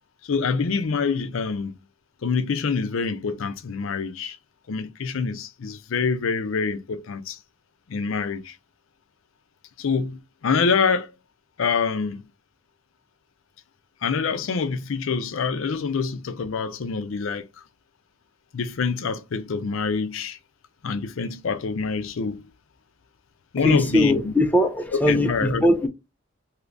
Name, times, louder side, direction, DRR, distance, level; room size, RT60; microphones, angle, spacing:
voice 1, 0.2-1.7 2.2-4.4 4.7-7.4 7.9-8.6 9.8-11.1 11.6-12.2 14.0-17.5 18.5-20.4 20.8-22.5 23.5-24.3 25.1-25.6, left 5 dB, 70° left, 0.5 m, -26 dB
voice 2, 23.6-25.9, left 1 dB, 10° left, 0.4 m, -20 dB
2.8 x 2.5 x 3.3 m
head